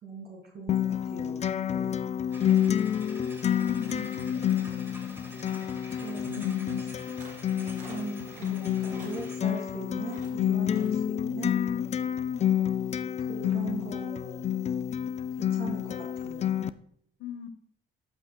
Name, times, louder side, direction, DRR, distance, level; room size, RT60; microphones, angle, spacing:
voice 1, 0.0-1.4 1.7-2.0 6.0-6.6 7.5-11.6 13.3-14.9 15.4-16.5, right 3 dB, 60° right, -1 dB, 2.6 m, -40 dB
Acoustic guitar, 0.7-16.7, left 9 dB, 35° left, 0.4 m, -29 dB
sound 1, 2.3-9.5, equal, 10° right, 1.7 m, -48 dB
voice 2, 3.7-4.5 6.3-6.8 17.2-17.5, left 7 dB, 80° left, 10 dB, 0.9 m, -38 dB
sound 2, 7.2-7.5 7.8-8.5 8.9-9.7 10.0-10.3 10.7-11.0, right 2 dB, 40° right, 3.2 m, -49 dB
13.0 x 5.9 x 2.2 m, 0.66 s
cardioid pair, 90°, 20 cm